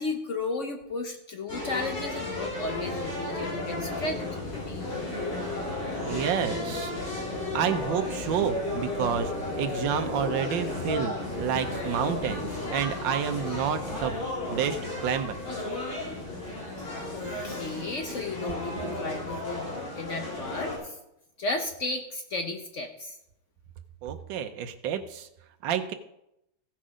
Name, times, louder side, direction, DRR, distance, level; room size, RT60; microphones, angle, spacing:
voice 1, 0.0-4.8 17.1-21.0 21.4-23.2, left 2 dB, 50° left, 4 dB, 1.0 m, -34 dB
sound 1, 1.5-20.8, left 2 dB, 70° left, 4.1 m, -33 dB
voice 2, 6.0-7.2 7.5-14.2 14.5-15.4 24.0-25.3 25.6-25.9, right 8 dB, 80° right, 8 dB, 1.5 m, -29 dB
15.5 x 5.9 x 4.9 m, 0.82 s
omnidirectional pair, 2.1 m